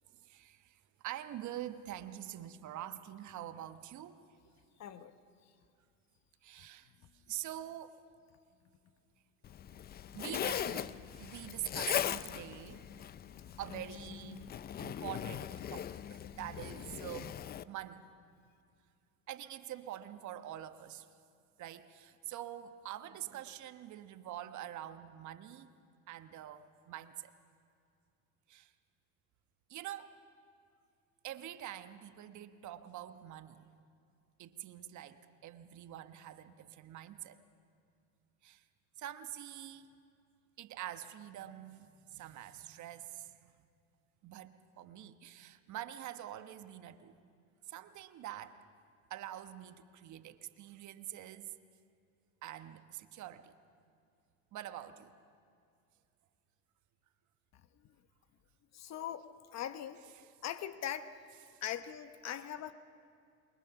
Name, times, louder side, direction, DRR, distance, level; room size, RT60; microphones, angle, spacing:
voice 1, 0.1-4.2 6.4-8.0 9.7-9.8 10.1-12.9 13.6-14.5 14.8-18.0 19.3-21.1 21.6-25.7 26.1-27.3 28.5-28.7 29.7-30.1 31.2-33.7 34.4-37.4 38.4-38.6 39.0-39.9 40.6-43.7 44.2-47.2 47.7-48.6 49.1-51.5 52.4-53.5 54.5-55.1 60.2-60.3 61.5-61.6, right 12 dB, 45° right, 10 dB, 1.2 m, -46 dB
voice 2, 4.8-5.1 13.7-13.8 58.7-60.1 60.4-61.1 61.6-62.7, left 10 dB, 40° left, 11 dB, 1.1 m, -41 dB
Zipper (clothing), 9.4-17.6, left 10 dB, 25° left, 0.5 m, -40 dB
27.5 x 23.0 x 6.0 m, 2.3 s
supercardioid pair, 105°, 42 cm